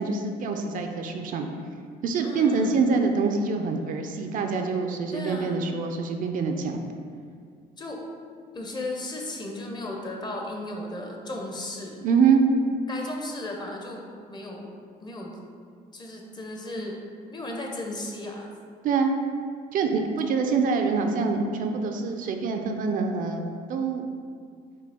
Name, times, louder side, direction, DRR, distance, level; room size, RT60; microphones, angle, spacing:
voice 1, 0.0-1.5 2.0-6.8 12.0-12.4 18.8-19.1 19.7-23.4 23.7-24.1, right 5 dB, 55° right, 4 dB, 0.4 m, -25 dB
voice 2, 2.2-3.0 5.1-5.6 7.8-8.0 8.5-12.0 12.9-14.0 14.3-14.7 15.0-15.4 15.9-17.0 17.3-18.5, left 1 dB, 25° left, 0 dB, 0.6 m, -35 dB
5.2 x 2.3 x 3.4 m, 2.1 s
cardioid pair, 110°, 17 cm